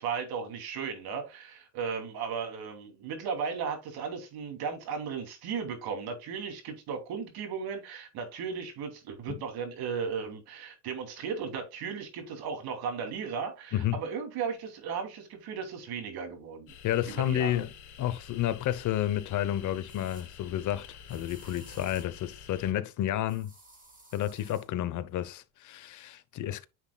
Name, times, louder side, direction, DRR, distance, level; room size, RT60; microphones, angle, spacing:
voice 1, 0.0-16.7 17.1-17.6, right 6 dB, 55° right, 2.9 m, -36 dB
sound 1, 16.7-22.7, left 7 dB, 75° left, 3.0 m, -49 dB
voice 2, 16.8-17.7 18.0-23.5 24.1-26.7, left 12 dB, 45° left, 0.9 m, -31 dB
sound 2, 19.9-20.3 21.1-22.2 23.3-24.7, right 2 dB, 20° right, 2.7 m, -53 dB
9.7 x 5.9 x 2.3 m
supercardioid pair, 115°, 43 cm